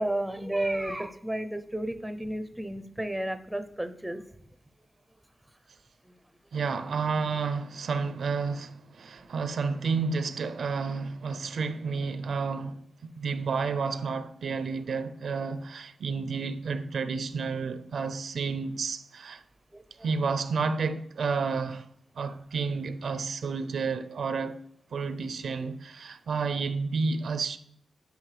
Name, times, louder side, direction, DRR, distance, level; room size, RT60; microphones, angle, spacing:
voice 1, 0.0-4.2 6.1-6.2 19.7-19.8, right 1 dB, 5° right, 0.5 m, -32 dB
voice 2, 6.5-19.4 20.0-21.9 22.2-24.6 24.9-27.6, right 4 dB, 70° right, 0.4 m, -31 dB
9.4 x 5.0 x 3.2 m
wide cardioid pair, 105°, 0 cm